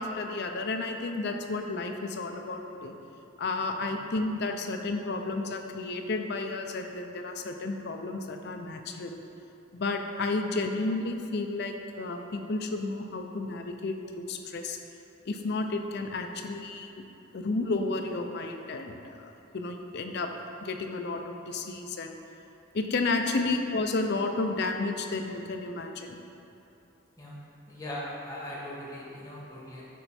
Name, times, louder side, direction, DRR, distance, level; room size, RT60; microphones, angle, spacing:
voice 1, 0.0-2.9 3.4-9.2 9.7-14.8 15.3-17.0 17.3-20.3 20.6-22.1 22.7-26.2, left 3 dB, 50° left, 4 dB, 0.5 m, -32 dB
voice 2, 27.7-29.8, left 1 dB, 15° left, -6 dB, 1.1 m, -40 dB
10.0 x 3.4 x 4.2 m, 2.8 s
head